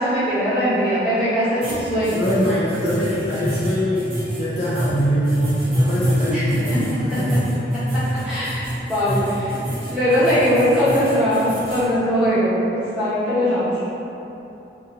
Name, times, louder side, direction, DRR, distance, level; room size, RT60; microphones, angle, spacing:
voice 1, 0.0-2.2 6.3-6.5 6.7-6.8 7.1-7.4 7.7-9.5 9.9-13.7, equal, 5° right, -15 dB, 1.1 m, -21 dB
sound 1, 1.6-11.9, equal, 30° right, 0.6 m, -26 dB
voice 2, 2.1-7.4 8.0-8.1, equal, 40° left, -9 dB, 0.4 m, -23 dB
2.7 x 2.6 x 2.7 m, 2.9 s
head